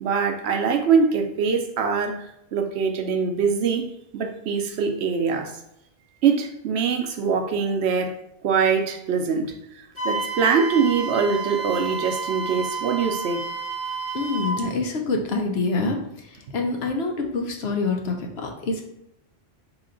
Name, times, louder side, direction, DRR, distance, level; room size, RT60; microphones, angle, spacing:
voice 1, 0.0-3.9 4.1-5.6 6.2-8.1 8.4-13.4, right 6 dB, 70° right, 5 dB, 0.8 m, -23 dB
Wind instrument woodwind instrument, 9.9-14.6, right 4 dB, 15° right, 0.7 m, -30 dB
voice 2, 14.1-16.0 16.5-18.8, left 3 dB, 65° left, 2 dB, 1.0 m, -26 dB
4.4 x 3.0 x 3.7 m, 0.79 s
omnidirectional pair, 1.2 m